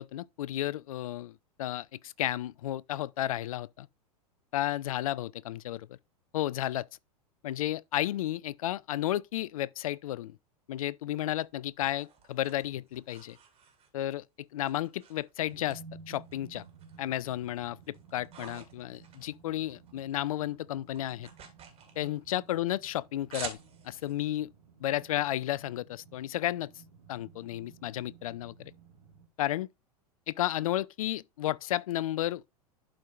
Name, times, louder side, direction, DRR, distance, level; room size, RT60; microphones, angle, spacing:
voice 1, 0.0-3.9 4.5-6.0 6.3-6.9 7.4-10.4 10.7-13.4 13.9-16.6 17.0-21.3 22.0-23.6 23.8-24.5 24.8-26.7 27.1-28.7 29.4-29.7 30.3-32.4, left 13 dB, 65° left, 0.4 m, -33 dB
sound 1, 11.3-14.2 14.6-15.8 16.1-17.1 17.5-20.1 20.3-24.1, right 7 dB, 30° right, 2.7 m, -49 dB
sound 2, 15.4-29.3, right 5 dB, 80° right, 1.7 m, -55 dB
11.5 x 4.5 x 2.4 m
figure-of-eight pair, 90°, 20 cm